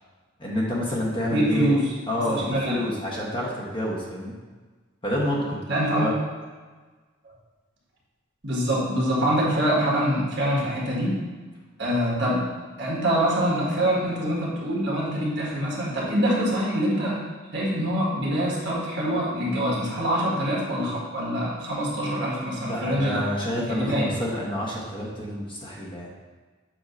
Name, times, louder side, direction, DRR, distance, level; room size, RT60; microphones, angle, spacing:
voice 1, 0.4-1.7 2.1-4.3 5.0-5.6 5.9-6.1 22.6-26.1, left 1 dB, 25° left, -4 dB, 1.0 m, -28 dB
voice 2, 1.3-1.9 2.3-2.8 5.7-6.0 8.4-11.1 11.8-12.5 12.8-17.1 17.5-23.2 23.7-24.1, equal, 55° right, -4 dB, 1.7 m, -25 dB
7.3 x 2.8 x 5.2 m, 1.4 s
head